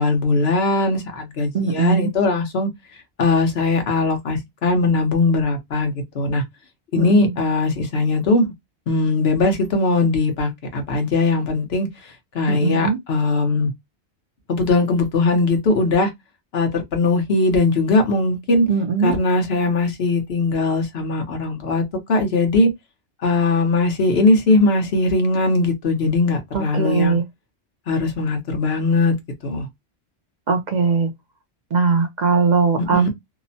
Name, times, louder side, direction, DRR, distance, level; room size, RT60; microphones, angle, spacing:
voice 1, 0.0-2.7 3.2-6.4 6.9-8.5 8.9-11.9 12.3-13.7 14.5-16.1 16.5-18.7 19.0-21.8 22.1-22.7 23.2-27.2 27.9-29.1 29.4-29.7 32.9-33.1, left 3 dB, 70° left, 1.1 m, -20 dB
voice 2, 1.5-2.1 7.0-7.2 12.5-13.0 18.7-19.1 26.5-27.2 30.5-31.1 31.7-33.1, right 4 dB, 55° right, 0.5 m, -20 dB
2.9 x 2.1 x 2.6 m
omnidirectional pair, 1.1 m